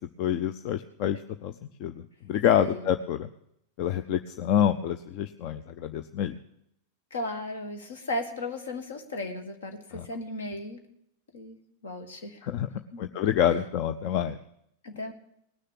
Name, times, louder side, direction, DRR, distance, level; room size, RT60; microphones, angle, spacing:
voice 1, 0.2-1.5 1.8-3.3 3.8-6.4 9.9-10.1 12.4-12.7 13.0-14.4, left 10 dB, 45° left, 10 dB, 0.5 m, -27 dB
voice 2, 2.6-2.9 7.1-10.8 11.3-12.5 12.9-13.1 14.8-15.1, left 1 dB, 65° left, 6 dB, 1.8 m, -36 dB
19.0 x 6.6 x 8.7 m, 0.77 s
figure-of-eight pair, 90°, 0 cm